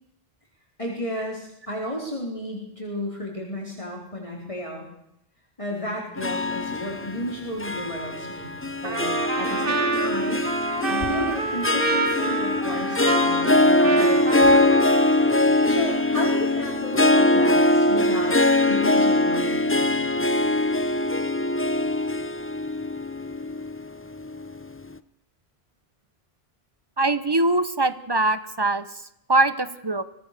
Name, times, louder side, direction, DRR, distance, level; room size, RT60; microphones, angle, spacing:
voice 1, 0.8-4.9 5.6-10.5 10.9-14.7 15.5-18.4 18.7-20.0, left 1 dB, 30° left, -1 dB, 4.3 m, -32 dB
Harp, 6.2-24.6, left 1 dB, 15° left, 0.7 m, -22 dB
Trumpet, 8.8-15.5, right 4 dB, 60° right, 1.7 m, -29 dB
voice 2, 27.0-30.0, right 2 dB, 25° right, 14 dB, 1.1 m, -23 dB
23.5 x 18.0 x 6.8 m, 0.78 s
omnidirectional pair, 1.0 m